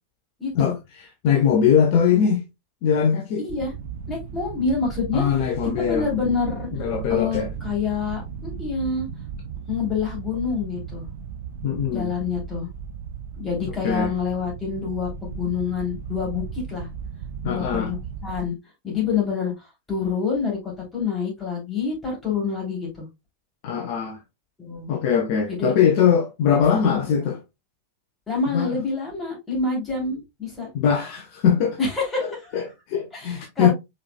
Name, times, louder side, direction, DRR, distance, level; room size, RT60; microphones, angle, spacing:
voice 1, 0.4-0.7 3.4-3.7 4.1-5.3 5.7-6.7 7.1-9.1 9.7-11.1 11.9-12.7 13.4-16.9 17.4-18.0 18.2-18.5 18.8-23.1 24.6-25.0 25.5-25.7 26.8-27.0 28.3-30.7 31.8-32.6 33.1-33.7, left 5 dB, 15° left, 2.9 m, -27 dB
voice 2, 1.2-2.4 2.8-3.4 5.1-6.1 6.7-7.5 11.6-12.1 13.7-14.1 17.4-17.9 23.6-24.2 24.9-27.4 28.5-28.7 30.7-31.8 32.2-33.7, left 7 dB, 45° left, 0.8 m, -21 dB
sound 1, 3.5-18.5, right 7 dB, 55° right, 0.5 m, -35 dB
4.8 x 4.5 x 2.2 m
figure-of-eight pair, 90°, 0 cm